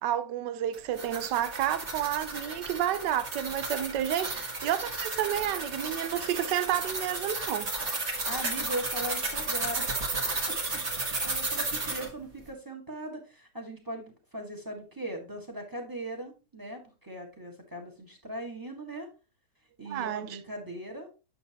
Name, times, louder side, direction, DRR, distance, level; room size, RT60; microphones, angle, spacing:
voice 1, 0.0-7.7 19.9-20.3, right 11 dB, 85° right, 1.3 m, -30 dB
sound 1, 0.7-12.1, right 3 dB, 40° right, 1.7 m, -33 dB
voice 2, 8.3-9.9 10.5-19.1 19.8-21.1, right 1 dB, 10° right, 1.5 m, -39 dB
8.7 x 6.6 x 2.8 m
omnidirectional pair, 1.9 m